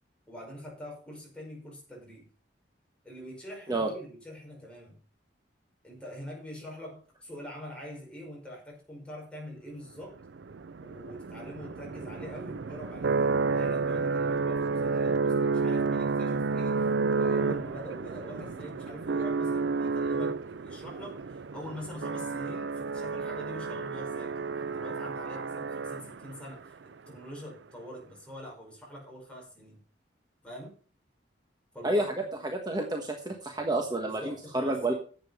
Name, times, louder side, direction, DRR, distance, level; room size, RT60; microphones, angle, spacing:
voice 1, 0.3-2.3 3.0-5.0 5.8-10.2 10.8-29.8 30.4-30.7 31.7-32.1 34.0-35.0, equal, 5° left, -2 dB, 5.2 m, -44 dB
sound 1, 10.2-26.4, right 4 dB, 75° right, 0.5 m, -30 dB
voice 2, 31.8-34.9, right 1 dB, 25° right, 2 dB, 1.3 m, -30 dB
11.0 x 8.1 x 5.5 m, 0.40 s
head